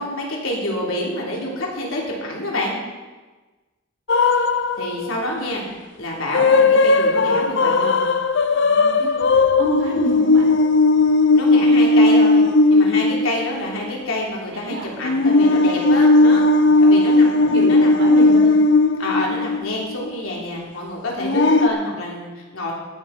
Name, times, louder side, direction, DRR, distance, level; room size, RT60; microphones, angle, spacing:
voice 1, 0.0-2.7 4.8-5.6 6.0-8.0 9.9-10.0 11.3-12.4 12.7-16.5 16.8-17.4 17.7-18.0 18.4-18.5 19.0-22.7, left 1 dB, 80° left, -2 dB, 3.4 m, -27 dB
sound 1, 4.1-5.1 6.3-13.6 13.9-14.0 15.0-19.9 21.2-21.7, left 2 dB, 60° left, 0.7 m, -16 dB
voice 2, 8.5-10.5 14.5-14.9 16.0-18.5, equal, 65° right, -4 dB, 5.3 m, -30 dB
14.5 x 11.5 x 4.2 m, 1.3 s
head